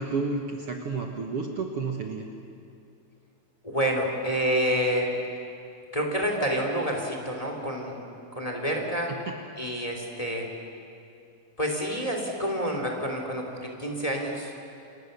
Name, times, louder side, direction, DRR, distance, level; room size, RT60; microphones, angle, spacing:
voice 1, 0.0-2.3 9.1-9.3, right 4 dB, 55° right, 2 dB, 2.3 m, -31 dB
voice 2, 3.6-5.1 5.9-8.0 8.3-9.1 9.6-10.5 11.6-14.5, equal, 10° left, 1 dB, 3.4 m, -28 dB
29.0 x 29.0 x 6.9 m, 2.5 s
omnidirectional pair, 3.5 m